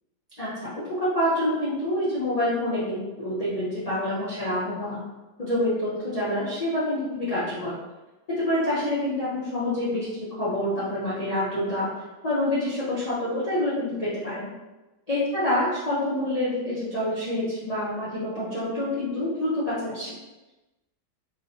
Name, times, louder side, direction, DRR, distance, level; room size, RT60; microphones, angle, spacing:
voice 1, 0.4-0.7 1.0-5.0 5.4-7.7 8.3-11.9 12.2-14.5 15.1-20.1, left 1 dB, 55° left, -11 dB, 0.4 m, -27 dB
3.1 x 3.0 x 2.7 m, 1.1 s
omnidirectional pair, 2.0 m